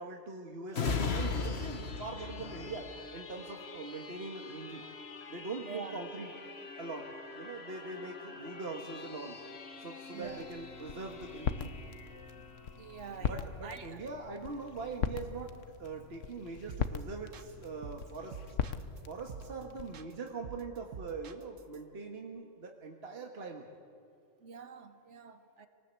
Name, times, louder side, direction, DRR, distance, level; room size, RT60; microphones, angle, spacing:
voice 1, 0.0-4.8 5.3-6.3 6.8-9.4 9.8-11.7 13.3-18.4 19.1-23.7, right 3 dB, 55° right, 2 dB, 1.9 m, -42 dB
sound 1, 0.7-14.0 14.5-14.6, left 4 dB, 55° left, 1.7 m, -41 dB
voice 2, 5.7-6.0 10.1-10.5 12.7-14.1 24.4-25.7, right 6 dB, 70° right, 9 dB, 1.6 m, -46 dB
sound 2, 10.2-20.0, left 7 dB, 75° left, 1.3 m, -40 dB
sound 3, 16.7-17.0 17.3-19.0 19.3-19.6 19.9-21.8, right 6 dB, 90° right, 1.5 m, -47 dB
26.5 x 19.0 x 8.3 m, 2.5 s
omnidirectional pair, 1.3 m